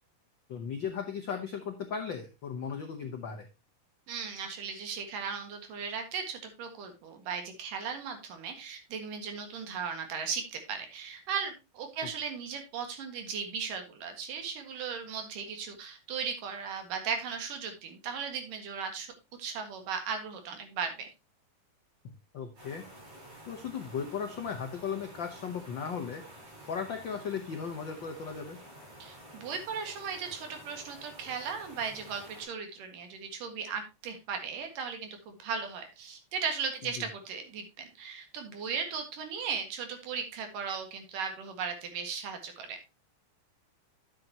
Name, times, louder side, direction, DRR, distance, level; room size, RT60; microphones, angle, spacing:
voice 1, 0.5-3.5 12.0-12.1 22.0-22.8 23.4-26.2 26.7-28.6 37.0-37.1, left 6 dB, 85° left, 5 dB, 1.0 m, -36 dB
voice 2, 4.1-19.1 19.4-21.1 29.0-42.8, right 6 dB, 80° right, 6 dB, 3.4 m, -37 dB
sound 1, 22.6-32.5, right 1 dB, 60° right, 8.5 m, -50 dB
11.5 x 7.6 x 2.9 m, 0.25 s
omnidirectional pair, 3.7 m